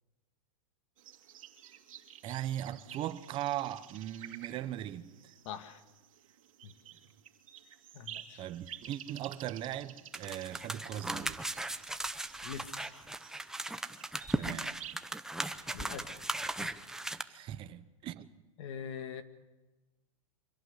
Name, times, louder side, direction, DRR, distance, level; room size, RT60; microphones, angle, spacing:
sound 1, 1.0-14.9, right 10 dB, 75° right, 2.4 m, -52 dB
voice 1, 2.2-5.1 8.4-11.5 14.4-14.7 17.3-18.3, right 12 dB, 30° right, 1.1 m, -39 dB
voice 2, 5.5-5.8 6.6-6.7 7.9-8.5 12.4-12.9 15.7-16.8 18.6-19.2, left 7 dB, 60° left, 1.9 m, -44 dB
sound 2, 10.1-17.2, right 1 dB, 5° right, 0.8 m, -37 dB
25.5 x 17.0 x 8.1 m
hypercardioid pair, 135°, 17 cm